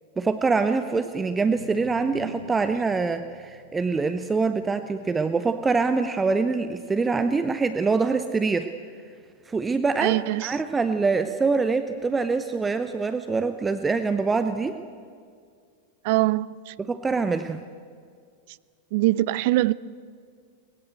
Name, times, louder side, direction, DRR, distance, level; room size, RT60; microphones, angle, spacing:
voice 1, 0.2-8.7 9.5-10.2 10.4-14.8 16.8-17.6, right 4 dB, 15° right, 9 dB, 0.8 m, -24 dB
sound 1, 1.1-7.4, left 1 dB, 90° left, 2.8 m, -47 dB
voice 2, 10.0-10.6 16.0-16.7 18.9-19.7, right 18 dB, 50° right, 19 dB, 0.5 m, -23 dB
22.0 x 19.5 x 8.1 m, 2.2 s
figure-of-eight pair, 90°, 0 cm